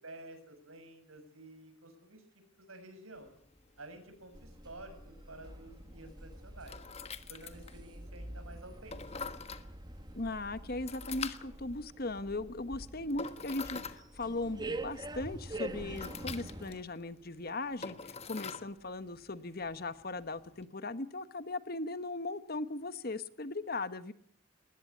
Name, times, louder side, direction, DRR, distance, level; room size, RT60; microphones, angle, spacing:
voice 1, 0.0-2.2 2.6-3.3 3.8-6.8 7.3-9.3, right 2 dB, 75° right, 8 dB, 6.7 m, -51 dB
sound 1, 3.1-20.6, left 5 dB, 30° left, 1.4 m, -47 dB
sound 2, 4.3-16.8, right 2 dB, 20° right, 1.5 m, -46 dB
voice 2, 10.1-24.1, left 2 dB, 45° left, 13 dB, 1.1 m, -38 dB
21.5 x 19.0 x 8.5 m, 0.64 s
head